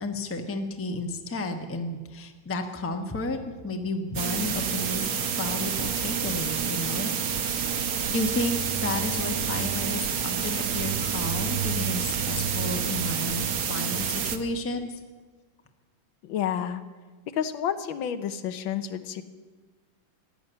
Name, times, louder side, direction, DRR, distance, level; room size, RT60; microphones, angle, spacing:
voice 1, 0.0-3.4 3.6-5.1 5.4-7.1 8.1-14.9, left 2 dB, 10° left, 4 dB, 0.7 m, -32 dB
sound 1, 4.1-14.4, right 7 dB, 55° right, 1.2 m, -28 dB
voice 2, 16.2-16.8 17.3-19.2, left 9 dB, 80° left, 10 dB, 1.6 m, -30 dB
15.5 x 11.0 x 7.8 m, 1.4 s
omnidirectional pair, 2.2 m